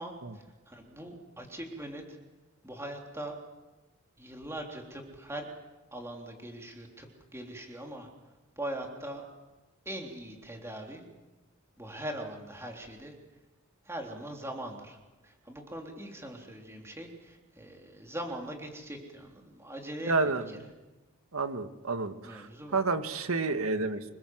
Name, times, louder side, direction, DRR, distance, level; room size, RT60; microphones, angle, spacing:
voice 1, 0.0-2.2 2.6-3.3 4.2-5.5 5.9-8.1 8.6-9.3 9.9-11.0 11.8-13.1 13.8-15.0 15.2-20.1 22.2-22.8, right 1 dB, 10° right, 2 dB, 3.5 m, -41 dB
voice 2, 20.0-20.5 21.3-24.0, right 3 dB, 75° right, 8 dB, 1.7 m, -30 dB
26.5 x 21.0 x 7.9 m, 1.1 s
head